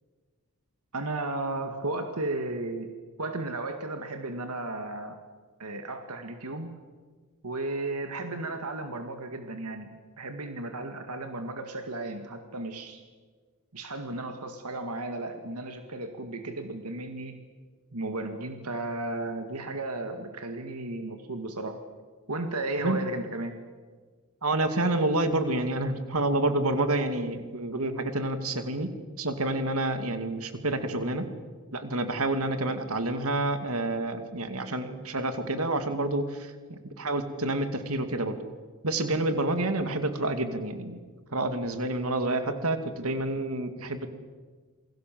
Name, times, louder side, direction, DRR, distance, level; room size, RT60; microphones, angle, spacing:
voice 1, 0.9-5.2 5.6-6.7 7.4-9.9 10.2-13.0 13.7-17.4 17.9-21.8 22.3-23.6, right 2 dB, 90° right, 6 dB, 2.0 m, -34 dB
voice 2, 24.4-28.9 29.2-31.2 31.7-38.4 38.8-41.0 41.3-44.1, right 2 dB, 75° right, 8 dB, 2.5 m, -28 dB
28.5 x 22.0 x 7.7 m, 1.5 s
head